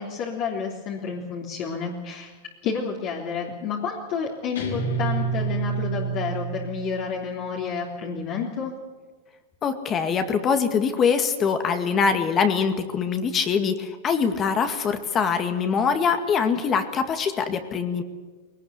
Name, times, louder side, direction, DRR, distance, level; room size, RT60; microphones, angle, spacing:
voice 1, 0.0-2.3 2.6-8.7, left 5 dB, 45° left, -2 dB, 3.4 m, -30 dB
Guitar, 4.6-7.2, right 5 dB, 80° left, 5.6 m, -28 dB
voice 2, 9.6-18.0, left 6 dB, 25° left, 7 dB, 2.0 m, -23 dB
20.5 x 19.0 x 8.3 m, 1.4 s
supercardioid pair, 135°, 0 cm